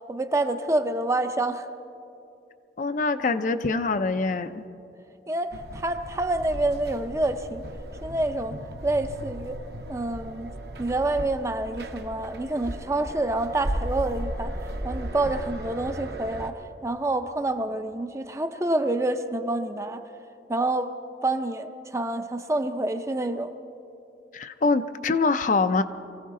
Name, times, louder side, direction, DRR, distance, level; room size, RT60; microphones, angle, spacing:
voice 1, 0.1-1.7 5.3-7.6 8.0-8.6 8.8-9.6 9.9-10.5 10.8-14.5 14.8-16.5 16.8-20.0 20.5-20.9 21.2-23.5, right 2 dB, 15° right, 8 dB, 0.5 m, -27 dB
voice 2, 2.8-4.6 24.3-25.8, left 3 dB, 45° left, 10 dB, 0.5 m, -24 dB
sound 1, 5.5-16.5, right 1 dB, 65° right, 1.0 m, -36 dB
23.5 x 15.5 x 3.7 m, 2.7 s
head